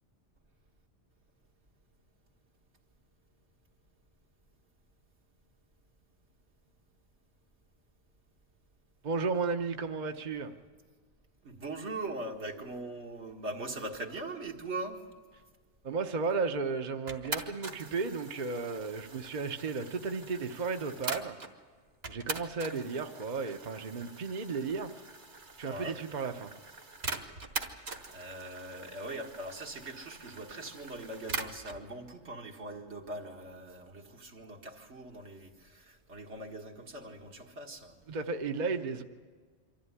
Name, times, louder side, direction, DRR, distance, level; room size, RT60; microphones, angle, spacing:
voice 1, 9.0-10.5 15.8-21.4 22.1-24.9 25.6-26.5 38.1-39.0, right 4 dB, 45° right, 5 dB, 0.9 m, -34 dB
voice 2, 11.4-15.0 25.6-26.0 27.6-38.0, right 2 dB, 80° right, 1 dB, 2.2 m, -41 dB
sound 1, 17.1-21.5 22.0-31.8, right 3 dB, 60° right, 1.8 m, -42 dB
24.5 x 14.5 x 9.7 m, 1.5 s
omnidirectional pair, 1.2 m